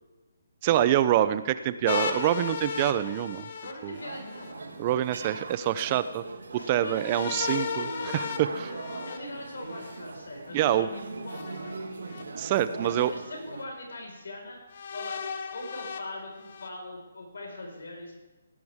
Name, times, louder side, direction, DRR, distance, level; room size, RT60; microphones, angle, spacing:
voice 1, 0.6-3.5 3.8-3.9 4.8-6.2 6.5-8.7 10.5-10.9 12.4-13.1, right 12 dB, 30° right, 14 dB, 0.6 m, -26 dB
sound 1, 1.9-4.5 7.0-10.0 11.3-12.2 13.0-13.1 14.7-16.7, left 6 dB, 50° left, 1.1 m, -35 dB
voice 2, 3.6-4.7 6.6-7.3 8.0-11.5 12.8-14.6 14.9-15.1 15.5-18.1, left 1 dB, 75° left, 0 dB, 5.0 m, -41 dB
sound 2, 3.9-13.6, right 3 dB, 80° right, 1.6 m, -40 dB
18.0 x 10.5 x 3.6 m, 1.1 s
hypercardioid pair, 155°, 0 cm